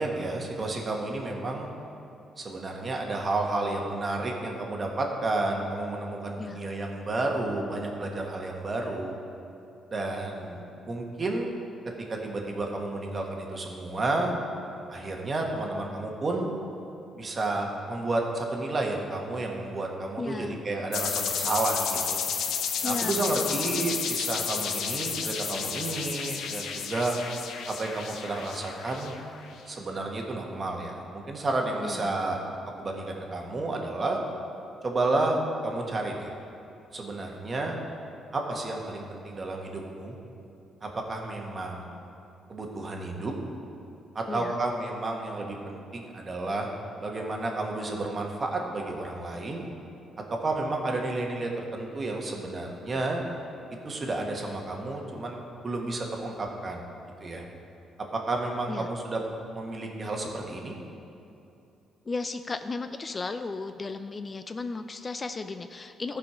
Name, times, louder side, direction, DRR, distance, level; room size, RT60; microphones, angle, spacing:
voice 1, 0.0-1.7 2.4-9.2 9.9-11.5 12.1-14.3 14.9-16.5 17.2-22.2 22.8-27.1 27.7-29.2 29.6-32.4 32.8-34.2 34.8-36.3 36.9-37.8 38.3-40.2 40.8-41.9 42.5-43.4 44.1-46.7 47.0-49.6 50.3-53.2 53.8-56.8 57.2-57.4 58.1-59.2 59.5-60.7, right 2 dB, 35° right, 1 dB, 1.5 m, -31 dB
voice 2, 20.2-20.6 22.8-24.0 31.8-32.1 44.3-44.6 58.7-58.9 62.1-66.2, left 3 dB, 30° left, 9 dB, 0.4 m, -35 dB
sound 1, 20.9-29.4, left 7 dB, 80° left, 0.8 m, -32 dB
14.0 x 5.1 x 5.0 m, 2.8 s
cardioid pair, 90°, 0 cm